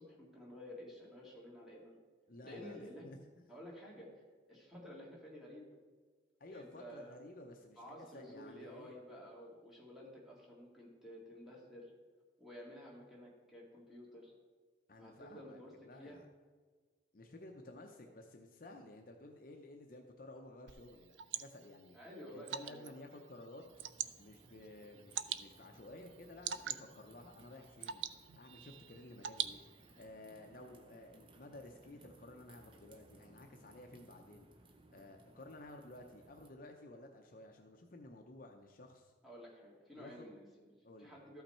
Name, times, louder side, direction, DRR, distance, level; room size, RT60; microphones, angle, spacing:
voice 1, 0.0-2.0 2.4-3.0 3.5-4.2 4.5-5.8 6.5-7.1 7.8-11.9 12.4-14.3 15.0-15.7 16.0-16.2 21.9-22.9 39.2-40.7 41.0-41.4, equal, ahead, -5 dB, 2.1 m, -52 dB
voice 2, 2.3-3.5 6.4-9.0 14.9-16.3 17.1-22.0 22.3-23.6 24.2-28.0 28.4-29.6 30.0-34.5 34.9-39.1 39.9-40.3 40.8-41.2, left 1 dB, 45° left, 3 dB, 0.6 m, -54 dB
Water / Drip, 20.7-30.1, right 10 dB, 70° right, 0.4 m, -45 dB
sound 1, 23.6-36.5, right 2 dB, 25° right, 0.6 m, -63 dB
13.0 x 5.7 x 4.3 m, 1.5 s
head